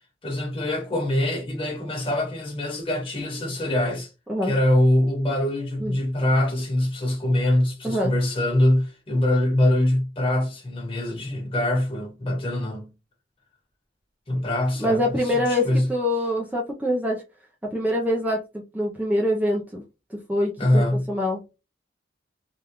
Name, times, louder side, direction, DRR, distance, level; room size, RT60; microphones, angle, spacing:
voice 1, 0.2-4.1 4.4-12.9 14.3-15.9 20.6-21.1, left 1 dB, 30° left, 1.3 m, -23 dB
voice 2, 14.8-17.2 17.6-19.8 20.1-21.4, left 1 dB, 10° right, 0.5 m, -25 dB
3.4 x 2.3 x 2.9 m
head